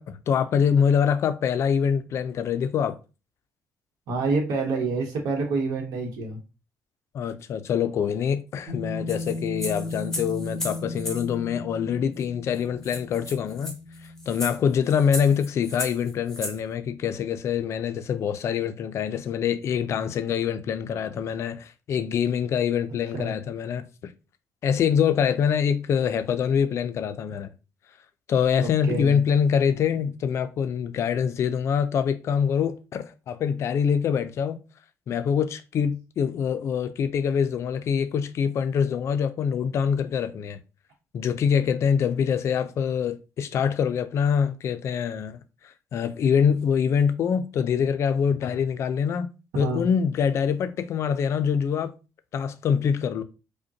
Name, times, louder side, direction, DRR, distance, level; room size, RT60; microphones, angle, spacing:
voice 1, 0.0-3.0 7.1-13.8 14.3-24.1 24.6-27.5 28.3-34.6 35.1-40.6 41.1-49.3 49.6-51.9 52.3-53.2, left 7 dB, 50° left, 0.4 m, -25 dB
voice 2, 4.1-6.4 23.2-23.3 28.6-29.2 49.6-49.9, right 3 dB, 85° right, 1.0 m, -27 dB
sound 1, 8.7-15.4, left 2 dB, 60° right, 1.6 m, -37 dB
sound 2, 9.1-11.3 12.2-12.3 12.5-12.6 12.8-16.6, left 1 dB, 5° left, 0.7 m, -36 dB
5.0 x 2.2 x 2.7 m
cardioid pair, 155°, 6 cm